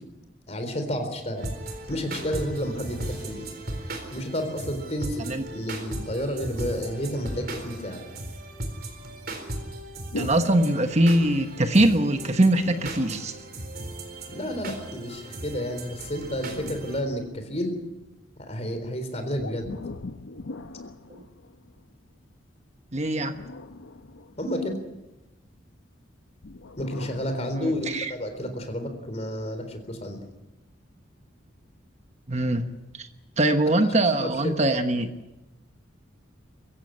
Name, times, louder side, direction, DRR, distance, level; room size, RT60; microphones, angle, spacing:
voice 1, 0.5-1.5 1.9-3.5 4.1-8.0 14.3-17.8 18.4-19.7 24.4-24.8 26.8-30.2 34.2-34.5, equal, 35° left, 7 dB, 4.0 m, -31 dB
sound 1, 1.4-17.0, right 1 dB, 50° right, 4.2 m, -37 dB
sound 2, 10.1-11.5 12.5-14.1 15.8-17.8 19.3-21.9 23.0-24.9 26.4-27.4, left 2 dB, 85° left, 0.9 m, -41 dB
voice 2, 10.1-13.4 21.1-21.2 22.9-23.4 27.5-28.1 32.3-33.1 33.4-35.1, right 1 dB, 35° right, 7 dB, 1.2 m, -22 dB
24.0 x 15.0 x 9.9 m, 0.99 s
head